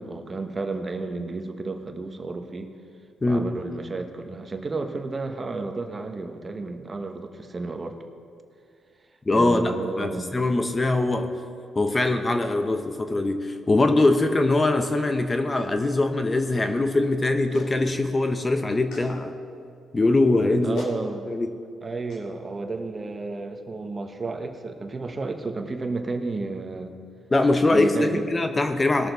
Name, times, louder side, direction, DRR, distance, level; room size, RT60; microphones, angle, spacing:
voice 1, 0.0-2.7 3.2-8.0 9.3-10.3 20.6-21.3 21.8-26.9 27.7-28.2, right 3 dB, 30° right, 5 dB, 1.1 m, -32 dB
voice 2, 9.3-9.7 10.0-11.3 11.8-19.3 19.9-20.8 21.3-21.5 27.3-29.1, left 2 dB, 25° left, 7 dB, 0.8 m, -22 dB
Clapping, 17.5-17.8 18.9-19.1 20.3-20.4 20.8-21.0 22.1-22.2, left 2 dB, 80° left, 2.3 m, -37 dB
19.5 x 6.7 x 4.0 m, 2.4 s
cardioid pair, 90°, 0 cm